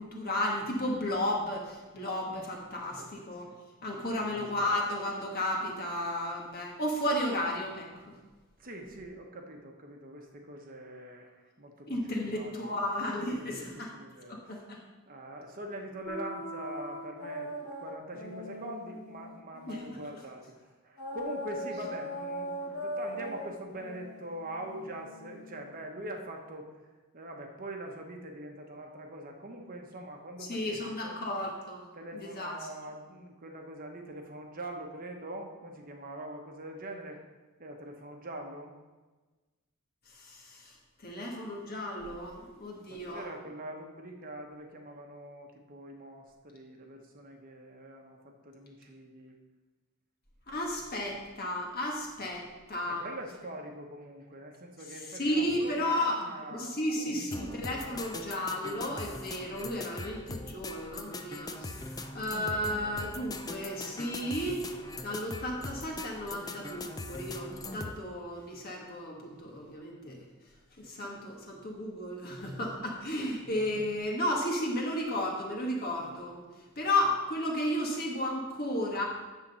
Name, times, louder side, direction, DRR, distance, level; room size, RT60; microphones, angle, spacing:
voice 1, 0.0-3.5 3.8-8.0 11.9-13.9 14.3-14.8 19.7-19.8 30.4-31.8 32.1-32.6 40.1-40.7 41.0-43.3 50.5-52.4 52.7-53.0 55.1-56.2 56.5-64.6 65.0-70.2 70.8-76.4 76.7-79.1, left 1 dB, 45° left, -1 dB, 1.6 m, -33 dB
voice 2, 4.0-4.3 8.6-12.7 13.3-14.6 15.1-17.5 17.8-20.5 20.8-26.7 27.1-31.1 31.9-37.2 37.6-38.8 42.9-49.3 52.9-58.4, right 1 dB, 40° right, 2 dB, 1.0 m, -43 dB
sound 1, 16.1-20.2 21.0-25.7, equal, 70° left, 1.5 m, -40 dB
sound 2, 57.3-68.0, left 2 dB, 15° left, 0.4 m, -41 dB
10.0 x 3.8 x 6.8 m, 1.3 s
head